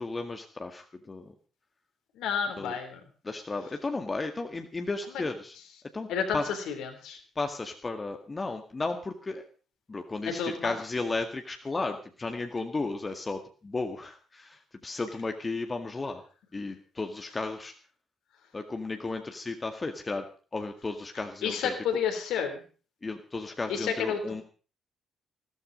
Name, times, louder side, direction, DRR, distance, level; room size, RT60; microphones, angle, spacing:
voice 1, 0.0-1.3 2.6-2.7 3.2-5.6 5.9-6.1 6.3-6.5 7.4-9.5 9.9-16.2 16.5-17.7 18.5-20.2 20.5-21.7 23.0-24.4, left 3 dB, 25° left, 5 dB, 1.9 m, -34 dB
voice 2, 2.2-3.0 6.1-7.2 10.3-10.7 21.4-22.6 23.7-24.4, left 7 dB, 60° left, 5 dB, 3.4 m, -30 dB
16.5 x 14.0 x 5.3 m, 0.39 s
figure-of-eight pair, 40°, 0 cm